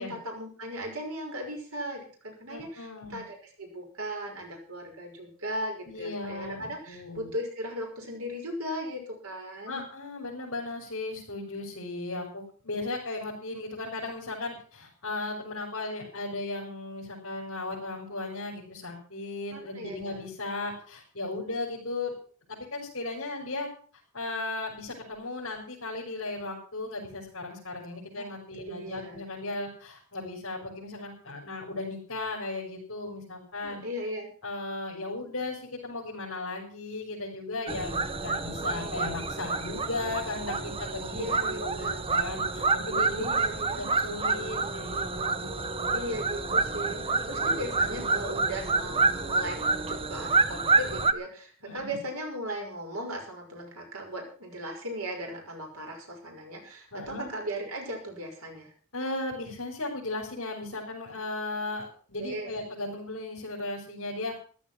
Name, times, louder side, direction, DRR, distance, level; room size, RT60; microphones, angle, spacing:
voice 1, 0.0-9.9 19.5-20.2 28.1-28.3 28.6-29.2 33.6-34.3 41.1-42.0 43.2-43.8 45.9-58.7 62.2-62.5, equal, 70° right, 2 dB, 5.9 m, -37 dB
voice 2, 2.5-3.2 5.9-7.3 9.7-22.1 22.5-23.7 24.1-33.8 34.4-41.3 41.6-41.9 42.1-43.3 43.8-46.1 51.6-51.9 56.9-57.3 58.9-64.3, left 2 dB, 65° left, -4 dB, 5.2 m, -36 dB
sound 1, 37.7-51.1, right 3 dB, 25° right, 0.9 m, -28 dB
14.5 x 12.0 x 6.0 m, 0.42 s
head